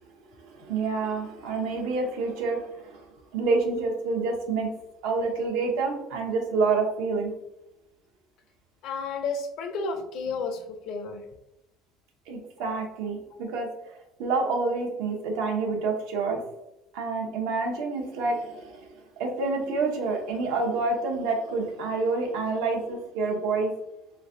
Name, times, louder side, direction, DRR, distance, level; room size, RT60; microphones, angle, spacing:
voice 1, 0.5-3.0 3.3-4.7 5.0-7.3 12.3-13.7 14.2-16.4 16.9-23.7, right 3 dB, 80° right, 2 dB, 0.9 m, -28 dB
voice 2, 8.8-11.2, left 4 dB, 60° left, 6 dB, 0.5 m, -32 dB
3.2 x 3.2 x 2.6 m, 0.89 s
cardioid pair, 140°, 0 cm